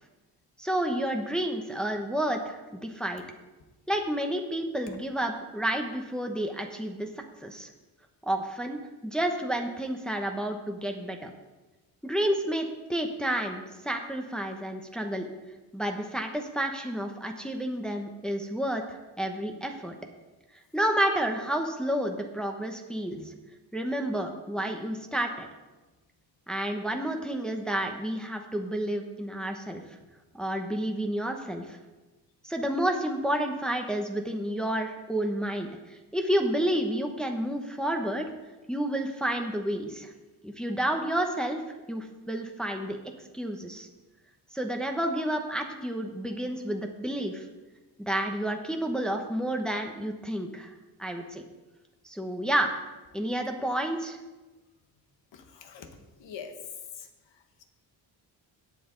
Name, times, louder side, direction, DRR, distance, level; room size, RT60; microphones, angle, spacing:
voice 1, 0.6-3.2 3.9-7.1 7.4-7.7 8.3-11.3 12.0-15.3 15.7-20.0 20.7-23.2 23.7-25.5 26.5-29.8 30.3-31.8 32.4-38.3 38.7-40.1 40.4-41.6 41.9-43.0 43.3-43.9 44.5-47.4 48.0-50.7 51.0-51.4 52.0-52.7 53.1-54.2, right 1 dB, ahead, 3 dB, 0.9 m, -30 dB
voice 2, 55.3-55.9 56.2-56.5 57.0-57.1, left 7 dB, 80° left, 5 dB, 1.5 m, -43 dB
17.0 x 7.6 x 3.9 m, 1.1 s
wide cardioid pair, 145°, 43 cm